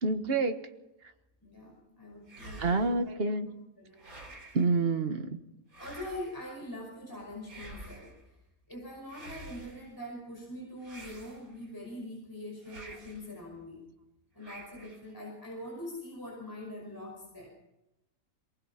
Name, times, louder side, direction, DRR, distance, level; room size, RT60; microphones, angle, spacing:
voice 1, 0.0-0.6 2.6-3.5 4.5-5.4, right 3 dB, 40° right, 7 dB, 1.6 m, -28 dB
voice 2, 1.4-3.0 3.4-3.5 3.8-4.0 5.8-8.1 8.7-13.8 14.3-17.5, left 1 dB, 15° left, -2 dB, 5.7 m, -43 dB
sound 1, 2.3-3.1 4.0-4.7 5.7-6.5 7.4-8.2 9.1-9.9 10.8-11.7 12.6-13.3 14.4-15.1, right 2 dB, 70° right, 4.6 m, -48 dB
23.5 x 19.5 x 5.9 m, 0.91 s
omnidirectional pair, 1.6 m